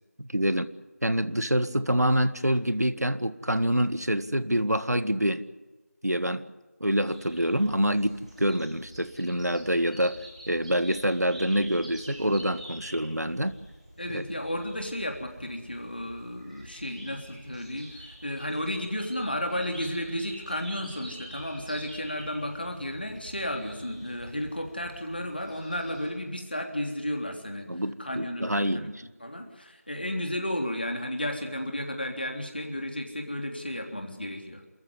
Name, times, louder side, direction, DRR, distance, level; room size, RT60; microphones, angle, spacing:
voice 1, 0.2-0.7 1.0-5.4 6.0-6.5 6.8-10.2 10.5-13.6 14.1-14.2 27.7-29.0, equal, 75° right, 13 dB, 1.7 m, -26 dB
sound 1, 7.0-26.1, equal, 25° right, 6.0 m, -47 dB
voice 2, 14.0-27.7 28.0-34.6, left 1 dB, 35° left, 3 dB, 3.5 m, -33 dB
28.0 x 14.5 x 9.8 m, 1.2 s
figure-of-eight pair, 175°, 9 cm